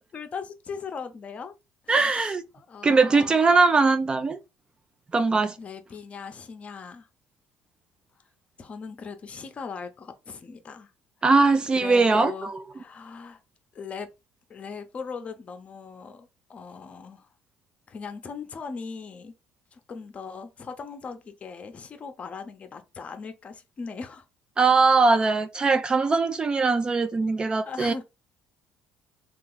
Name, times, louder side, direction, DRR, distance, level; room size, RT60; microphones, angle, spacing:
voice 1, 0.1-1.5 1.8-3.4 5.6-7.1 8.6-10.9 11.7-13.4 13.7-14.1 14.5-17.3 17.9-19.3 19.7-24.2 27.6-28.0, left 5 dB, 35° left, 0.6 m, -39 dB
voice 2, 1.9-2.4 2.8-4.4 5.1-5.6 11.2-12.6 24.6-27.9, right 4 dB, 25° right, 0.3 m, -21 dB
2.9 x 2.4 x 3.7 m
cardioid pair, 105°, 4 cm